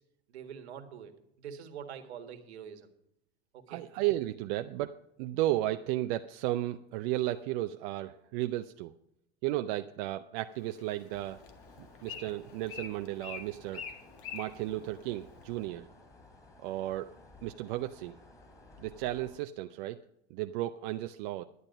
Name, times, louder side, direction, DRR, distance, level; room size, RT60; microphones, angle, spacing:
voice 1, 0.3-1.1 1.4-2.9 3.5-3.8, right 8 dB, 75° right, 7 dB, 1.7 m, -45 dB
voice 2, 3.7-8.9 9.4-11.4 12.0-13.8 14.3-15.9 16.6-17.1 17.4-18.2 18.8-20.0 20.3-21.4, right 15 dB, 55° right, 8 dB, 0.6 m, -34 dB
Bird, 10.5-15.7, left 7 dB, 45° left, 1.8 m, -47 dB
sound 1, 11.1-19.4, left 2 dB, 10° left, 3.5 m, -56 dB
11.0 x 9.5 x 5.3 m, 0.76 s
hypercardioid pair, 100°, 33 cm